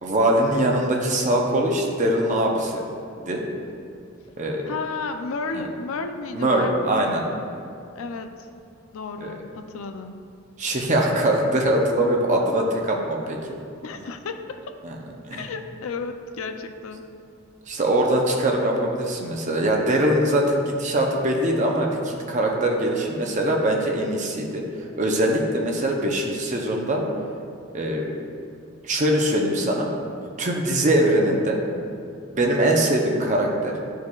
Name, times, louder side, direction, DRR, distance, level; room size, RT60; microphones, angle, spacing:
voice 1, 0.0-2.8 3.2-3.4 4.4-4.6 5.5-5.6 6.3-7.2 9.2-9.3 10.6-13.4 14.8-15.0 15.3-15.4 17.7-24.6 24.9-27.0 27.7-28.1 28.8-29.9 30.4-31.6 32.3-33.7, right 1 dB, 35° right, 0 dB, 0.7 m, -22 dB
voice 2, 4.6-6.7 8.0-8.3 8.9-10.2 13.8-14.6 15.3-17.1, left 4 dB, 90° left, 7 dB, 0.5 m, -32 dB
11.5 x 4.7 x 2.3 m, 2.4 s
head